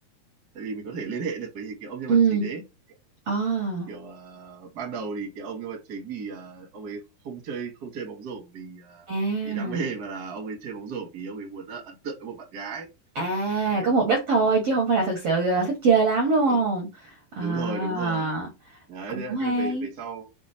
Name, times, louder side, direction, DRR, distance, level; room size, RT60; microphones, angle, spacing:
voice 1, 0.5-2.6 3.9-9.1 9.4-12.9 13.6-13.9 16.5-16.6 17.4-18.3 18.9-20.3, right 5 dB, 35° right, 1.5 m, -35 dB
voice 2, 2.1-2.5 3.3-3.9 9.1-9.9 13.2-18.5 19.1-19.9, right 4 dB, 55° right, 1.8 m, -24 dB
6.2 x 4.3 x 4.4 m
omnidirectional pair, 4.6 m